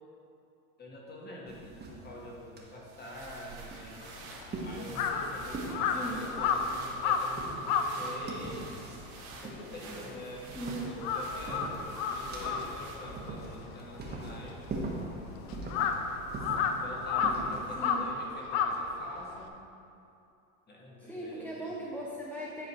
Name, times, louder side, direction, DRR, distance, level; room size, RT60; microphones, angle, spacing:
voice 1, 0.8-4.1 4.6-8.8 9.4-14.7 16.4-16.5 16.8-19.5 20.7-21.7, left 1 dB, 25° left, -2 dB, 1.6 m, -45 dB
sound 1, 1.5-17.8, right 2 dB, 25° right, 1.4 m, -43 dB
sound 2, 2.7-13.3, right 4 dB, 80° right, 1.3 m, -50 dB
Crow, 4.0-10.6 10.9-19.5, left 6 dB, 55° left, 0.7 m, -33 dB
voice 2, 5.8-6.2 10.5-10.9 17.7-18.1 21.0-22.7, right 1 dB, 5° left, -4 dB, 0.6 m, -39 dB
10.5 x 4.1 x 4.3 m, 2.6 s
hypercardioid pair, 100°, 42 cm